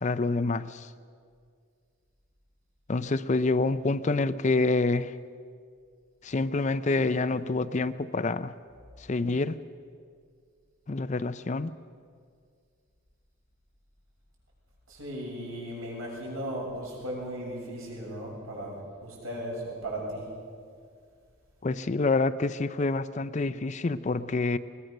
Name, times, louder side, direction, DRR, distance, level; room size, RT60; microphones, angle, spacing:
voice 1, 0.0-0.9 2.9-5.1 6.2-8.5 9.1-9.5 10.9-11.7 21.6-24.6, left 3 dB, 35° left, 13 dB, 0.4 m, -27 dB
voice 2, 14.9-20.2, right 1 dB, 70° right, -3 dB, 7.0 m, -36 dB
21.0 x 19.5 x 6.5 m, 2.1 s
head